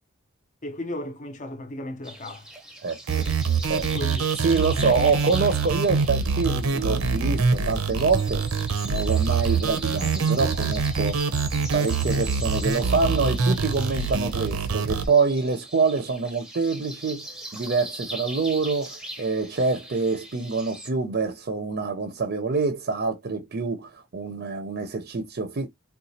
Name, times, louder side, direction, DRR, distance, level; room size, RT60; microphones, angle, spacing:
voice 1, 0.6-2.5 3.1-3.4 3.9-4.3, left 1 dB, 35° left, 0.6 m, -35 dB
sound 1, 2.0-20.9, right 1 dB, 5° right, 0.7 m, -40 dB
sound 2, 3.1-15.1, right 5 dB, 85° right, 0.7 m, -25 dB
voice 2, 4.3-8.4 8.8-11.2 11.7-25.7, right 4 dB, 45° right, 0.6 m, -26 dB
4.0 x 2.3 x 2.6 m
head